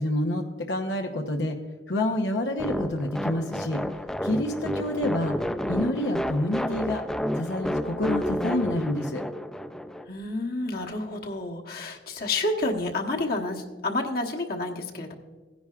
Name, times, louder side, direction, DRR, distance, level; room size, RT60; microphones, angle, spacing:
voice 1, 0.0-1.6 1.9-3.8 4.2-5.4 5.7-7.0 7.4-9.2, left 1 dB, 90° left, 3 dB, 0.9 m, -28 dB
sound 1, 2.6-10.0, left 1 dB, 5° left, 0.5 m, -30 dB
voice 2, 10.1-15.1, left 2 dB, 60° left, 1 dB, 1.2 m, -29 dB
16.5 x 10.0 x 2.4 m, 1.4 s
head